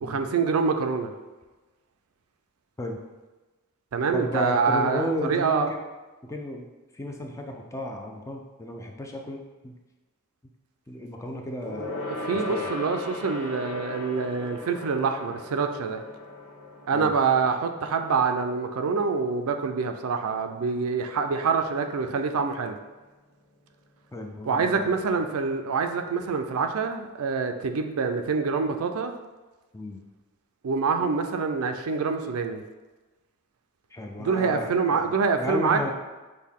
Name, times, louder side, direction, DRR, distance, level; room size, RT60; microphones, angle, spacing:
voice 1, 0.0-1.1 3.9-5.7 12.1-16.0 16.9-22.8 24.4-29.1 30.6-32.6 34.2-35.9, right 5 dB, 70° right, 6 dB, 0.4 m, -26 dB
voice 2, 4.1-5.8 6.2-6.7 7.0-9.7 10.9-11.9 12.5-12.7 16.9-17.1 24.1-24.9 29.7-30.0 33.9-35.1 35.4-35.9, equal, 15° left, 2 dB, 0.3 m, -33 dB
Gong, 11.6-21.4 21.7-21.9 22.2-22.3, left 2 dB, 70° left, 0.8 m, -39 dB
6.3 x 2.2 x 3.6 m, 1.2 s
head